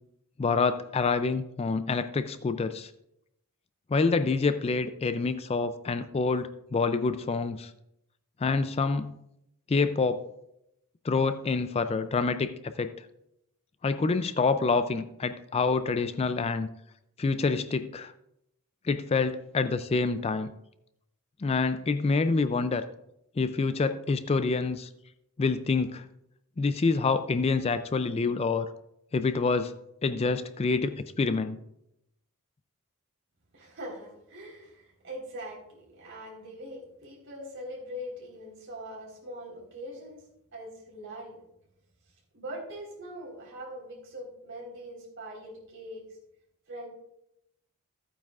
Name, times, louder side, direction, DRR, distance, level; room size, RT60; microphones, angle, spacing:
voice 1, 0.4-2.9 3.9-7.7 8.4-9.1 9.7-10.2 11.0-12.9 13.8-16.7 17.2-18.1 18.8-20.5 21.4-22.8 23.4-24.9 25.4-26.0 26.6-28.7 29.1-29.7 30.0-31.6, left 4 dB, 30° left, 11 dB, 0.3 m, -27 dB
voice 2, 33.5-40.2 40.5-41.4 42.3-46.0 46.7-46.9, equal, 60° right, -2 dB, 3.9 m, -42 dB
14.5 x 8.9 x 2.4 m, 0.81 s
head